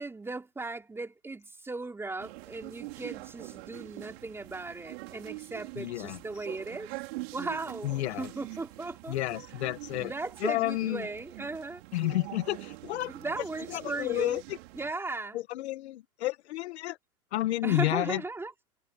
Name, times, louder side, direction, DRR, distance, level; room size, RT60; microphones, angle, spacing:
voice 1, 0.0-6.9 7.3-7.9 8.2-9.2 9.9-11.8 13.1-14.4 14.7-15.4 17.6-18.5, right 3 dB, 5° right, 3.8 m, -37 dB
sound 1, 2.2-14.9, right 22 dB, 45° right, 4.7 m, -44 dB
voice 2, 5.8-6.2 7.8-8.3 9.1-10.1 10.4-11.0 11.9-13.1 13.7-14.4 15.3-17.0 17.3-18.2, left 16 dB, 45° left, 1.4 m, -30 dB
hypercardioid pair, 155°, 44 cm